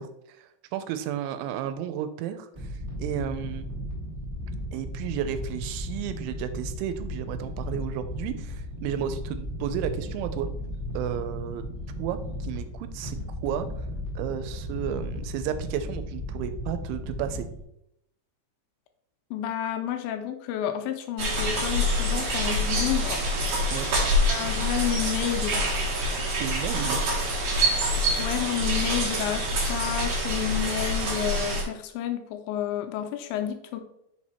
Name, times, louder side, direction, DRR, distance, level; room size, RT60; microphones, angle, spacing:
voice 1, 0.0-3.7 4.7-10.5 10.9-11.6 12.0-13.7 14.2-17.5 23.7-23.9 26.4-27.0, right 9 dB, 85° right, 10 dB, 2.9 m, -33 dB
sound 1, 2.5-17.6, equal, 15° right, 0.6 m, -35 dB
voice 2, 19.3-23.2 24.3-25.7 28.2-33.8, left 10 dB, 80° left, 6 dB, 2.7 m, -30 dB
sound 2, 21.2-31.6, equal, 60° right, 1.7 m, -26 dB
6.7 x 4.5 x 4.3 m, 0.80 s
omnidirectional pair, 5.4 m